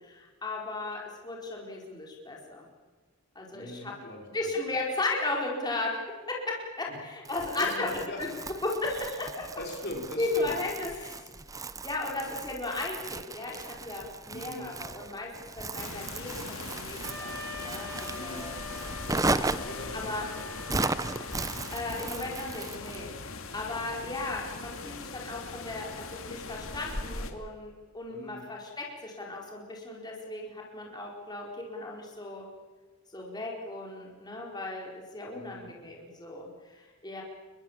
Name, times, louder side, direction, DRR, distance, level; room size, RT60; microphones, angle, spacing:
voice 1, 0.0-2.7 3.3-3.9 4.3-6.0 6.3-7.9 8.2-8.3 8.6-9.5 10.2-11.1 11.8-15.3 15.6-18.5 19.2-19.5 19.9-20.2 21.7-32.5 33.1-37.2, left 2 dB, 20° left, -2 dB, 4.7 m, -35 dB
voice 2, 3.5-4.5 6.9-7.0 7.6-8.2 9.6-10.5 14.3-14.7 18.1-18.5 19.6-20.1 20.4-20.5 28.1-28.5 35.3-35.7, left 1 dB, 50° left, 1 dB, 5.0 m, -41 dB
Crumpling crinkling, 7.2-23.0, right 3 dB, 15° right, 0.7 m, -36 dB
sound 1, 15.8-27.3, left 3 dB, 65° left, 2.6 m, -40 dB
Wind instrument woodwind instrument, 17.0-21.9, left 2 dB, 75° right, 5.9 m, -44 dB
29.5 x 23.0 x 7.5 m, 1.3 s
head